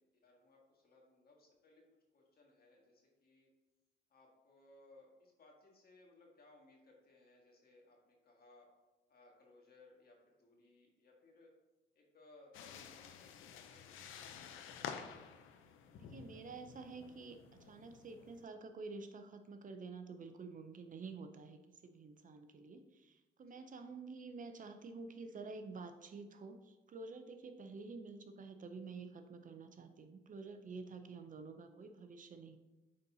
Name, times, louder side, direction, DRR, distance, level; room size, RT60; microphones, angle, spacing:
voice 1, 0.0-1.8 2.1-3.5 4.1-8.7 9.1-11.5 11.9-13.9 23.5-23.6 30.9-31.0, left 2 dB, 50° left, -1 dB, 1.7 m, -64 dB
sound 1, 12.5-18.4, left 7 dB, 85° left, 0.6 m, -51 dB
voice 2, 15.9-32.6, right 4 dB, 40° right, 7 dB, 0.6 m, -50 dB
8.5 x 4.1 x 2.7 m, 1.1 s
cardioid pair, 90°, 20 cm